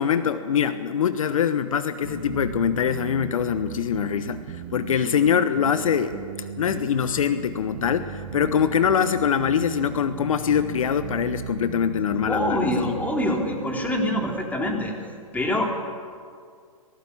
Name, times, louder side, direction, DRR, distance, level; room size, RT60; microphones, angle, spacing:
voice 1, 0.0-6.2 6.6-13.0, left 8 dB, 65° left, 11 dB, 1.1 m, -23 dB
sound 1, 2.0-14.3, right 7 dB, 55° right, 2.4 m, -36 dB
voice 2, 12.3-14.9 15.3-15.7, left 1 dB, 10° left, 0 dB, 3.8 m, -25 dB
19.0 x 18.0 x 8.6 m, 2.1 s
hypercardioid pair, 120°, 18 cm